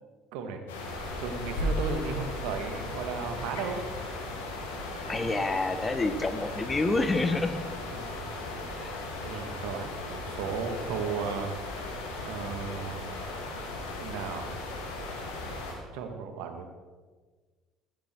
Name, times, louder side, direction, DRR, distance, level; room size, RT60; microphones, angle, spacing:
sound 1, 0.7-15.7, left 2 dB, 75° left, 3.3 m, -36 dB
voice 1, 1.2-3.9 5.0-5.5 7.9-8.4 9.2-13.1 14.0-14.5 15.9-16.7, right 5 dB, 65° right, 6 dB, 2.1 m, -35 dB
voice 2, 5.1-7.6 8.8-9.0, left 2 dB, 20° left, 9 dB, 1.5 m, -28 dB
16.0 x 15.5 x 4.7 m, 1.4 s
hypercardioid pair, 60°, 0 cm